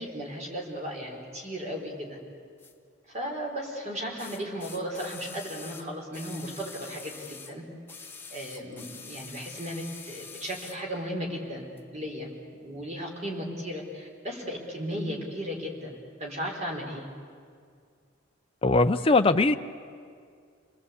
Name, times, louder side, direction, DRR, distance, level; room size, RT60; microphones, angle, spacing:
voice 1, 0.0-2.2 3.1-7.6 8.3-12.3 12.6-17.1, equal, 35° right, 0 dB, 4.2 m, -35 dB
sound 1, 2.6-2.7 4.2-7.6 7.9-10.8 11.8-11.9, left 5 dB, 10° left, 1.3 m, -45 dB
voice 2, 18.6-19.6, left 3 dB, 25° left, 6 dB, 0.5 m, -21 dB
29.0 x 20.0 x 8.3 m, 2.2 s
head